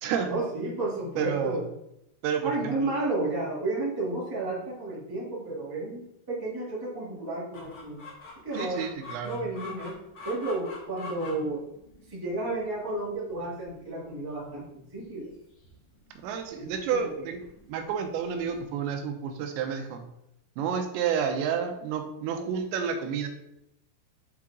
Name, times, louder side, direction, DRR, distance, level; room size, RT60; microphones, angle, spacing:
voice 1, 0.3-1.6 2.4-6.0 6.3-8.0 8.4-8.9 9.2-10.0 10.2-11.6 12.1-15.3 16.5-17.3, right 2 dB, 10° right, -7 dB, 1.4 m, -32 dB
voice 2, 1.2-1.6 2.2-3.0 8.5-9.4 16.2-17.4 17.7-20.0 20.6-23.3, right 7 dB, 85° right, 5 dB, 3.1 m, -30 dB
Chicken rooster, 7.5-18.6, left 3 dB, 60° left, 1.4 m, -46 dB
9.2 x 4.6 x 3.8 m, 0.82 s
omnidirectional pair, 5.1 m